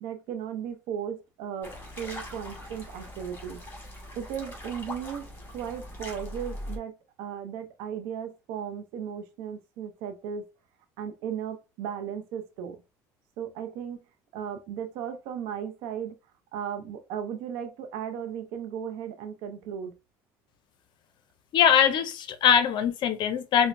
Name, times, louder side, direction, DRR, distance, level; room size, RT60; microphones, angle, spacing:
voice 1, 0.0-3.6 4.2-5.3 5.5-10.5 11.0-12.8 13.4-14.0 14.3-16.2 16.5-19.9, right 8 dB, 75° right, 0.6 m, -36 dB
sound 1, 1.6-6.8, left 1 dB, 20° left, 1.7 m, -41 dB
voice 2, 21.5-23.7, left 8 dB, 55° left, 0.5 m, -22 dB
4.3 x 2.1 x 2.5 m
supercardioid pair, 85°, 9 cm